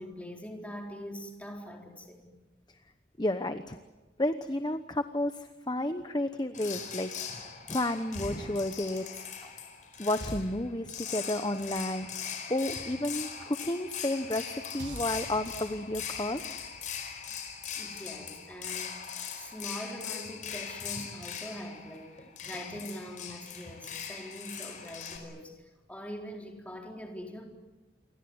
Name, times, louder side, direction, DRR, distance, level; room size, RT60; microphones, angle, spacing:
voice 1, 0.0-2.3 17.3-17.4 17.8-19.0 19.4-27.5, equal, 10° left, 1 dB, 4.1 m, -43 dB
voice 2, 3.2-3.8 4.2-9.5 10.0-12.1 12.5-16.4, left 1 dB, 25° left, 9 dB, 1.0 m, -32 dB
sound 1, 6.5-25.2, left 7 dB, 45° left, 4.9 m, -40 dB
sound 2, 14.8-19.1, right 3 dB, 85° right, 1.3 m, -50 dB
28.5 x 24.0 x 8.0 m, 1.2 s
head